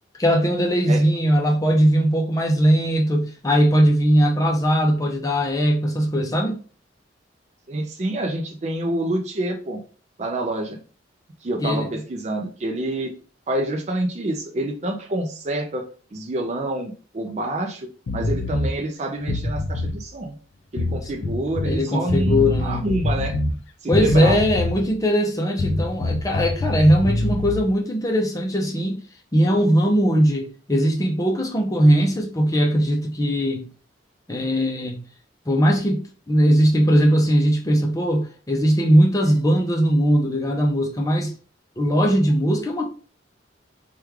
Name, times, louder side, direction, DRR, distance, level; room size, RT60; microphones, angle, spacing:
voice 1, 0.2-6.6 11.6-11.9 21.6-22.9 23.9-29.0 29.3-33.7 34.3-35.0 35.5-41.3 41.8-42.8, equal, 20° left, 0.5 m, -19 dB
voice 2, 7.7-9.8 10.2-10.8 11.4-13.1 13.5-15.8 16.1-17.9 18.1-20.3 20.7-23.4 23.8-24.4, right 1 dB, 35° right, 0.4 m, -27 dB
sound 1, 18.1-18.7 19.2-20.0 20.8-21.8 22.1-23.6 23.9-24.9 25.6-27.7, left 2 dB, 80° left, 0.5 m, -25 dB
3.1 x 2.3 x 3.3 m
head